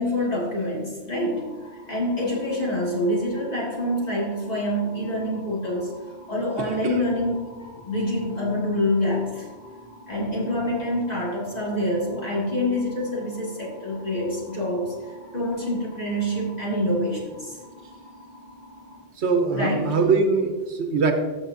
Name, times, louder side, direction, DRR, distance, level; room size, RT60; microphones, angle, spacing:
voice 1, 0.0-1.5 1.9-5.9 6.3-9.5 10.1-14.9 15.2-17.6 19.5-20.0, left 1 dB, 40° left, -4 dB, 2.1 m, -26 dB
sound 1, 1.1-19.0, equal, 75° left, 3.0 m, -47 dB
voice 2, 6.6-7.0 19.2-21.1, right 4 dB, 75° right, 5 dB, 1.2 m, -22 dB
13.5 x 5.8 x 2.6 m, 1.3 s
omnidirectional pair, 1.1 m